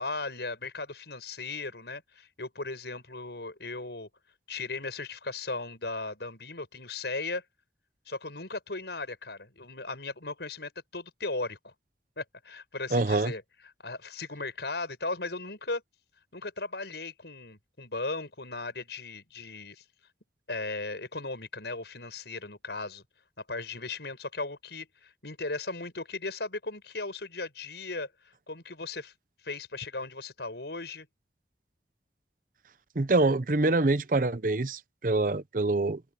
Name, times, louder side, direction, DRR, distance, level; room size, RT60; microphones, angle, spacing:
voice 1, 0.0-4.1 4.5-7.4 8.1-11.7 12.2-13.4 13.8-15.8 16.3-19.8 20.5-23.0 23.5-28.1 28.5-29.1 29.4-31.1, left 3 dB, 75° left, 5.6 m, -37 dB
voice 2, 12.9-13.3 33.0-36.0, right 2 dB, 50° right, 0.8 m, -25 dB
open air
head